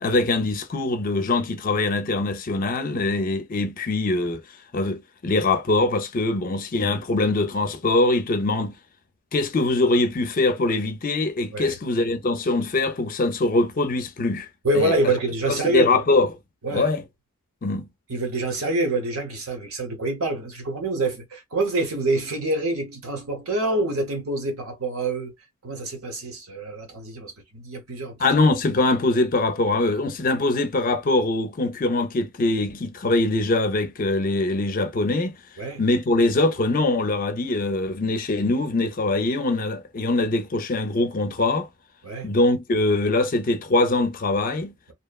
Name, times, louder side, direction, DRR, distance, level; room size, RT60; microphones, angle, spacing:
voice 1, 0.0-4.4 4.7-8.7 9.3-14.5 14.7-15.0 15.5-16.3 16.7-17.0 17.6-17.9 28.2-35.4 35.8-41.7 42.2-44.7, left 2 dB, 40° left, 0.4 m, -23 dB
voice 2, 14.6-16.0 16.6-16.9 18.1-25.3 25.6-28.3 35.6-35.8 42.0-42.3, right 2 dB, 75° right, 0.9 m, -26 dB
2.7 x 2.1 x 2.3 m
head